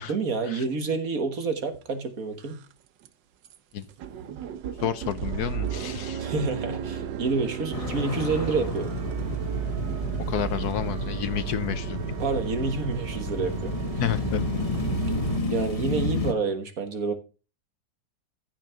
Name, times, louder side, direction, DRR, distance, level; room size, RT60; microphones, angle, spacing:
voice 1, 0.1-2.6 6.2-8.9 12.2-13.7 15.5-17.1, right 4 dB, 50° right, 1.8 m, -28 dB
sound 1, 1.7-1.8 2.3-2.7 3.0-3.1 3.4-3.6 3.8-15.4, right 9 dB, 75° right, 1.5 m, -34 dB
voice 2, 4.8-6.2 10.3-12.0 14.0-14.5, left 9 dB, 65° left, 1.2 m, -30 dB
sound 2, 7.7-16.3, left 2 dB, 25° left, 1.0 m, -31 dB
15.0 x 6.5 x 3.5 m
omnidirectional pair, 2.0 m